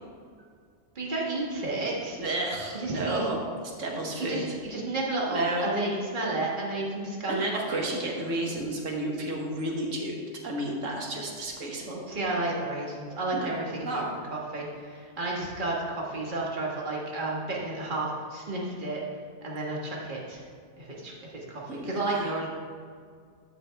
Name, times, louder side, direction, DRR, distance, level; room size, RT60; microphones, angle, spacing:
voice 1, 0.9-2.2 2.7-3.3 4.2-7.3 7.7-7.9 12.1-19.0 19.4-20.4 20.8-22.5, right 2 dB, 40° right, -3 dB, 1.5 m, -32 dB
voice 2, 2.2-3.4 3.8-4.6 5.3-5.7 7.3-10.2 10.4-12.0 13.3-13.5 13.8-14.0 21.7-22.3, right 1 dB, 80° right, 0 dB, 1.6 m, -32 dB
13.0 x 5.3 x 3.3 m, 2.1 s
omnidirectional pair, 1.3 m